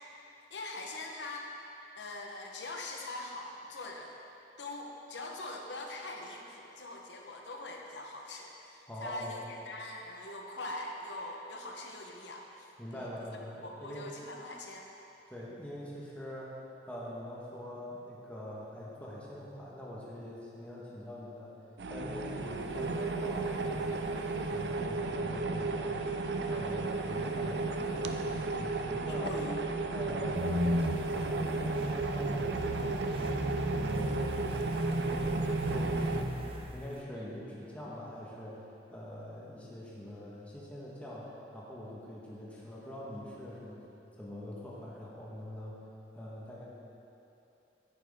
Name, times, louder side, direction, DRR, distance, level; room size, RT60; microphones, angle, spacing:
voice 1, 0.5-1.5 2.0-4.2 4.6-13.1 13.6-14.8 29.1-29.7 37.1-37.3, left 2 dB, 85° left, 1 dB, 1.0 m, -42 dB
voice 2, 8.9-9.4 12.8-14.1 15.3-16.5 16.8-21.5 21.9-26.2 26.5-29.4 29.9-33.4 33.8-34.7 35.0-36.3 36.7-38.6 38.9-43.8 44.2-45.8 46.1-46.7, left 1 dB, 10° left, -6 dB, 1.4 m, -44 dB
sound 1, 21.8-36.2, right 3 dB, 70° right, 0.5 m, -34 dB
sound 2, 30.3-36.8, equal, 35° right, 0.6 m, -34 dB
10.5 x 9.0 x 3.6 m, 2.9 s
head